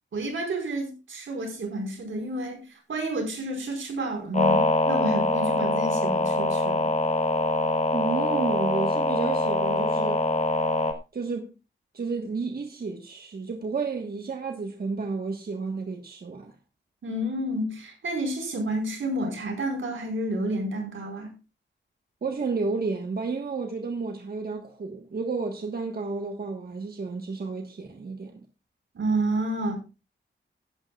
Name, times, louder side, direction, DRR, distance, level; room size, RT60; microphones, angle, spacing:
voice 1, 0.1-6.9 17.0-21.3 28.9-29.8, right 1 dB, 85° right, 4.7 m, -30 dB
sound 1, 4.3-10.9, left 1 dB, 35° left, 1.2 m, -24 dB
voice 2, 7.9-10.2 11.1-11.5 11.9-16.5 22.2-28.4, right 4 dB, 50° right, 1.4 m, -31 dB
15.5 x 12.0 x 2.4 m
wide cardioid pair, 125°, 20 cm